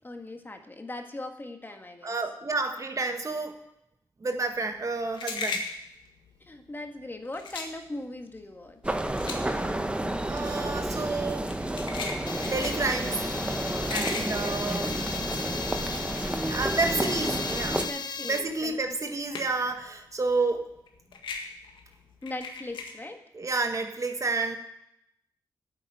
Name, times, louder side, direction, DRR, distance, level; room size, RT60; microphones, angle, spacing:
voice 1, 0.0-2.2 6.4-8.9 16.0-16.5 17.8-18.8 22.2-23.2, left 2 dB, 25° left, 5 dB, 1.8 m, -40 dB
voice 2, 2.0-3.6 4.2-5.6 10.3-11.7 12.4-13.3 13.9-15.0 16.5-17.8 18.2-20.7 23.3-24.6, right 3 dB, 40° right, 5 dB, 1.7 m, -30 dB
sound 1, 4.4-16.0 16.4-19.8 20.1-22.9, left 4 dB, 80° left, 1.7 m, -38 dB
sound 2, 8.8-17.9, right 1 dB, 15° right, 1.1 m, -31 dB
sound 3, 12.3-18.4, left 5 dB, 60° left, 1.0 m, -36 dB
8.8 x 8.8 x 9.3 m, 0.80 s
supercardioid pair, 50°, 8 cm